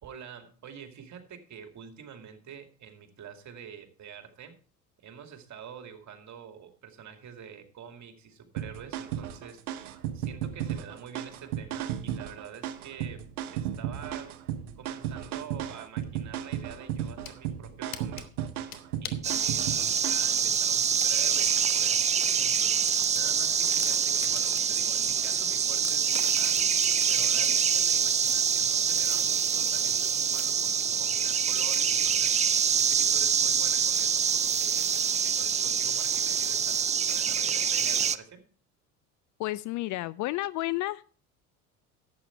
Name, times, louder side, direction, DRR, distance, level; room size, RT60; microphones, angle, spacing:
voice 1, 0.0-4.6 5.0-9.9 10.1-13.2 13.5-14.4 14.8-18.3 19.0-26.6 27.1-34.9 35.2-38.4, right 7 dB, 40° right, 6 dB, 2.4 m, -47 dB
sound 1, 8.6-20.4, right 10 dB, 80° right, 1.1 m, -34 dB
sound 2, 16.9-17.4 17.9-19.3 19.9-21.6 22.0-22.1 22.4-22.5 22.9-24.8 25.2-25.3 25.8-27.6, left 12 dB, 75° left, 1.2 m, -42 dB
sound 3, 19.2-38.2, right 7 dB, 15° right, 0.4 m, -25 dB
voice 2, 39.4-41.0, left 17 dB, 45° left, 18 dB, 0.4 m, -31 dB
11.5 x 8.6 x 4.5 m, 0.40 s
hypercardioid pair, 70°, 44 cm